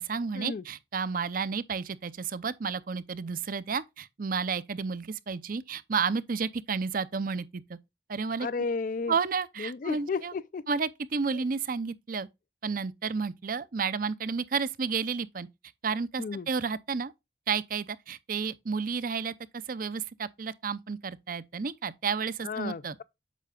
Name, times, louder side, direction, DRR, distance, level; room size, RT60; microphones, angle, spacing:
voice 1, 0.0-7.8 8.1-8.5 9.1-10.3 10.7-12.3 12.6-15.5 15.8-17.1 17.5-19.3 19.7-23.0, right 5 dB, 50° right, 0.6 m, -31 dB
voice 2, 8.4-9.1 9.6-10.7 11.3-11.4 16.2-16.5 22.4-23.0, left 4 dB, 50° left, 0.4 m, -33 dB
8.3 x 6.6 x 2.3 m
head